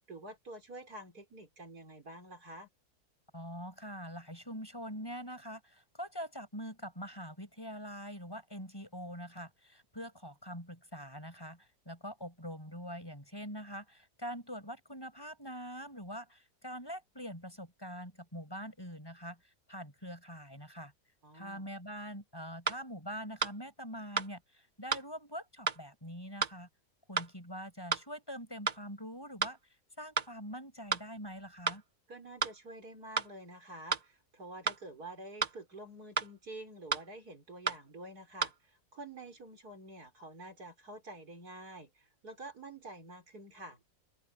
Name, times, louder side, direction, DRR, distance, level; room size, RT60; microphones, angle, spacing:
voice 1, 0.1-2.7 21.2-21.6 32.1-43.8, right 2 dB, 75° right, 5.3 m, -48 dB
voice 2, 3.3-20.9 21.3-26.7 27.1-29.6 30.0-31.8, equal, 15° left, 7.3 m, -44 dB
sound 1, 22.0-22.1 22.7-22.8 23.4-23.5 24.2-24.3 24.9-25.1 25.7-25.8 26.4-26.5 27.2-27.3 27.9-28.1 28.7-28.8 29.4-29.6 30.2-30.3 30.9-31.0 31.7-31.8 32.4-32.6 33.2-33.3 33.9-34.1 34.7-34.8 35.4-35.6 36.2-36.3 36.9-37.1 37.7-37.8 38.4-38.5, right 5 dB, 35° right, 0.7 m, -32 dB
open air
omnidirectional pair, 1.7 m